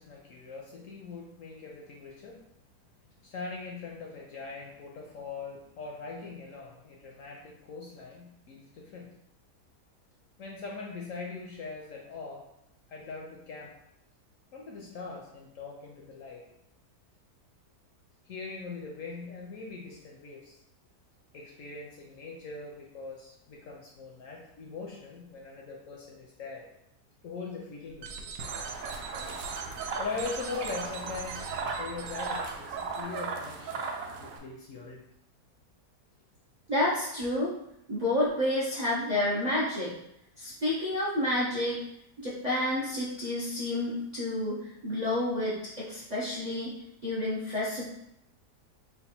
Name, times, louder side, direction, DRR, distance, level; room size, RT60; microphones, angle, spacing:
voice 1, 0.0-2.4 3.2-9.1 10.4-12.5 12.9-13.7 14.5-16.4 18.2-20.6 21.3-26.6 27.2-28.3 30.0-33.8 34.2-35.0, left 4 dB, 65° left, -1 dB, 0.8 m, -41 dB
sound 1, 27.9-33.0, right 6 dB, 90° right, 1.2 m, -42 dB
sound 2, 28.4-34.4, right 4 dB, 70° right, 0.9 m, -37 dB
voice 2, 36.7-37.5 37.9-39.9 40.4-41.8 42.2-46.8 47.0-47.8, left 1 dB, 50° right, -8 dB, 0.5 m, -29 dB
3.3 x 2.3 x 4.2 m, 0.80 s
omnidirectional pair, 1.8 m